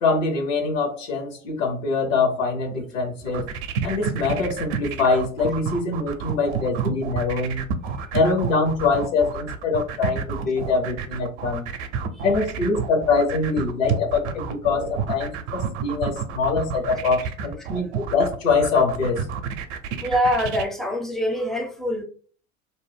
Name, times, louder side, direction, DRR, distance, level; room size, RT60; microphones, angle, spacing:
voice 1, 0.0-3.4 3.8-7.6 8.1-11.7 12.2-19.2, left 4 dB, 80° left, 0.9 m, -23 dB
sound 1, 3.2-20.6, right 6 dB, 60° right, 0.6 m, -30 dB
voice 2, 20.0-22.0, equal, ahead, 0.4 m, -24 dB
2.6 x 2.0 x 3.2 m
hypercardioid pair, 80°, 39 cm